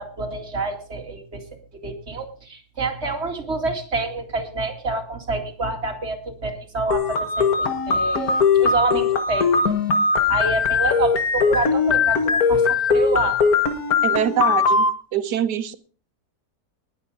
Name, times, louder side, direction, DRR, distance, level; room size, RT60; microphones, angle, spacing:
voice 1, 0.0-1.4 1.8-9.8 10.3-13.4, right 3 dB, 40° right, 3 dB, 2.6 m, -28 dB
sound 1, 6.9-14.9, left 5 dB, 65° left, 1.9 m, -20 dB
voice 2, 14.0-15.8, right 10 dB, 90° right, 12 dB, 1.6 m, -24 dB
19.5 x 7.9 x 4.9 m, 0.39 s
omnidirectional pair, 1.7 m